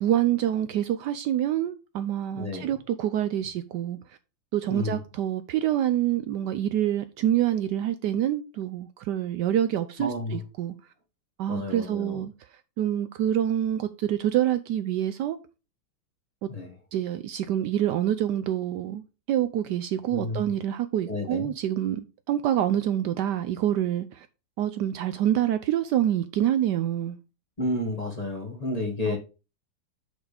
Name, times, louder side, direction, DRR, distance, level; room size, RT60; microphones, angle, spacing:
voice 1, 0.0-4.0 4.5-10.7 11.4-12.3 12.8-15.4 16.4-16.5 16.9-19.0 19.3-24.3 24.6-27.2 29.1-29.2, right 11 dB, 75° right, 1.1 m, -26 dB
voice 2, 2.4-2.7 4.7-5.0 10.0-10.4 11.5-12.2 16.5-16.7 20.1-20.4 21.1-21.5 27.6-29.2, left 1 dB, 20° left, 1.4 m, -31 dB
6.4 x 5.0 x 5.0 m
omnidirectional pair, 2.1 m